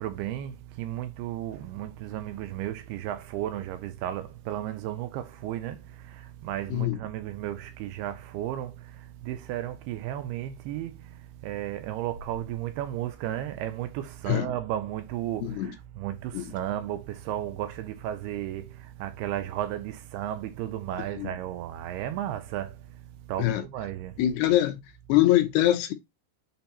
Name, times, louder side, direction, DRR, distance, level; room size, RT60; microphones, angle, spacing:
voice 1, 0.0-11.2 11.4-22.8 23.3-24.1, right 12 dB, 80° right, 2.6 m, -34 dB
voice 2, 15.4-15.7 16.3-16.5 21.2-21.3 23.4-23.6 24.2-24.8 25.1-25.9, left 14 dB, 80° left, 2.7 m, -23 dB
6.8 x 3.4 x 4.1 m
omnidirectional pair, 4.8 m